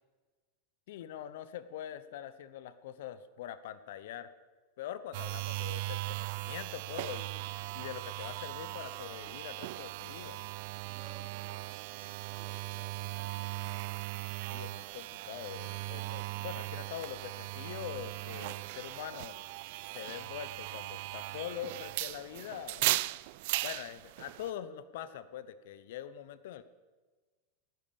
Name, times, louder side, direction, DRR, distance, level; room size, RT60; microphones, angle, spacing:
voice 1, 0.9-4.3 4.8-10.4 14.5-19.4 19.9-23.1 23.6-26.6, left 10 dB, 65° left, 14 dB, 0.9 m, -43 dB
sound 1, 5.1-24.5, right 21 dB, 60° right, 0.4 m, -38 dB
voice 2, 10.8-13.7, right 5 dB, 40° right, 0 dB, 3.9 m, -58 dB
18.5 x 10.5 x 7.0 m, 1.3 s
hypercardioid pair, 95°, 0 cm